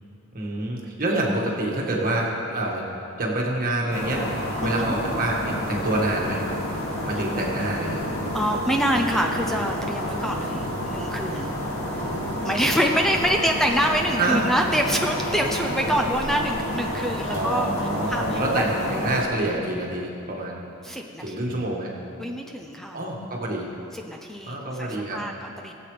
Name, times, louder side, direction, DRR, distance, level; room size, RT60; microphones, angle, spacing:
voice 1, 0.3-2.8 3.2-6.4 7.1-8.1 14.2-14.4 15.9-16.0 17.3-20.6 21.2-21.9 22.9-23.7 24.5-25.2, right 1 dB, 40° right, -2 dB, 1.7 m, -27 dB
sound 1, 3.9-19.2, equal, 75° left, 2.1 m, -29 dB
voice 2, 4.6-5.0 8.3-11.5 12.4-17.7 18.1-18.7 20.8-21.6 22.2-23.0 23.9-25.7, equal, ahead, 2 dB, 0.5 m, -26 dB
20.0 x 7.8 x 3.3 m, 2.8 s
head